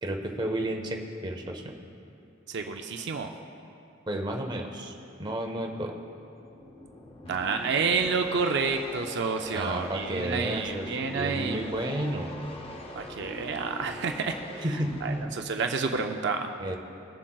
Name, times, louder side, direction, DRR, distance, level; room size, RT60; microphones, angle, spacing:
voice 1, 0.0-1.7 4.1-4.9 5.2-5.9 9.5-12.3 14.6-15.3 16.6-16.8, right 1 dB, 20° right, 2 dB, 0.7 m, -32 dB
voice 2, 2.5-3.3 7.3-11.7 13.0-14.7 15.0-16.4, right 5 dB, 60° right, 4 dB, 0.4 m, -29 dB
sound 1, 6.3-15.3, left 1 dB, 30° left, 0.7 m, -42 dB
21.5 x 7.3 x 2.3 m, 2.6 s
head